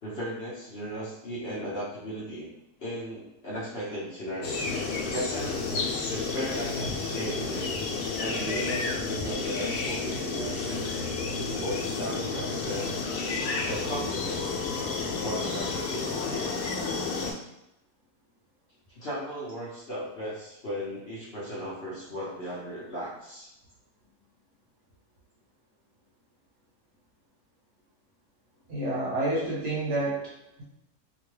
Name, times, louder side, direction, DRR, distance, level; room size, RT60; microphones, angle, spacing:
voice 1, 0.0-2.5 2.8-4.8 5.1-5.7 6.1-7.8 8.2-11.0 11.6-13.2 13.7-14.5 15.2-16.4 18.9-23.5, equal, 50° left, -8 dB, 0.8 m, -36 dB
sound 1, 4.4-17.3, left 4 dB, 80° left, 1.1 m, -31 dB
voice 2, 28.7-30.6, right 2 dB, 55° right, -5 dB, 1.0 m, -29 dB
2.9 x 2.2 x 3.1 m, 0.85 s
omnidirectional pair, 1.6 m